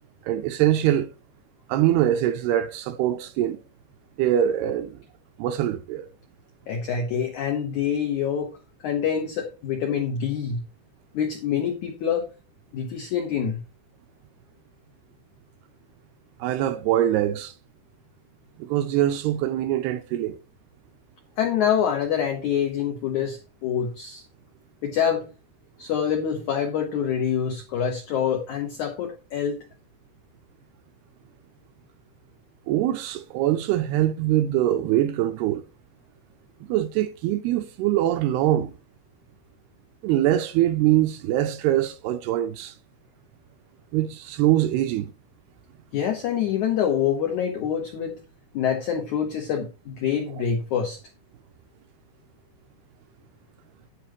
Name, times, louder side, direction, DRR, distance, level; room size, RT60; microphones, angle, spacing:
voice 1, 0.2-1.1 1.7-3.6 4.2-5.0 5.4-6.1 16.4-17.5 18.6-20.4 32.7-35.6 36.6-38.8 40.0-42.8 43.9-45.1, right 12 dB, 80° right, 2.4 m, -23 dB
voice 2, 6.7-8.6 8.8-10.6 11.1-12.3 12.7-13.6 21.4-24.2 24.8-25.3 25.8-29.6 45.9-48.2 48.5-51.0, left 8 dB, 85° left, 1.7 m, -26 dB
10.0 x 8.8 x 3.0 m
omnidirectional pair, 5.0 m